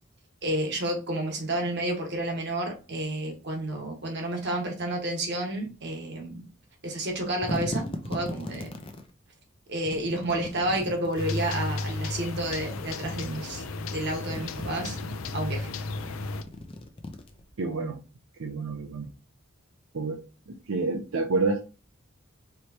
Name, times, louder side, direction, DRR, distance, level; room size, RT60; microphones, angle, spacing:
voice 1, 0.4-6.4 6.8-8.7 9.7-13.6 13.9-15.0 15.3-15.7, right 1 dB, 55° right, 2 dB, 1.4 m, -30 dB
sound 1, 7.1-9.1 9.9-11.5 12.4-13.4 13.8-15.3 15.9-17.7, left 1 dB, 25° left, 0.6 m, -38 dB
sound 2, 11.2-16.4, left 3 dB, 85° left, 0.5 m, -34 dB
voice 2, 17.6-18.0 18.4-19.1 19.9-20.2 20.5-21.7, right 3 dB, 80° right, 2 dB, 0.6 m, -28 dB
4.6 x 3.2 x 2.8 m, 0.33 s
head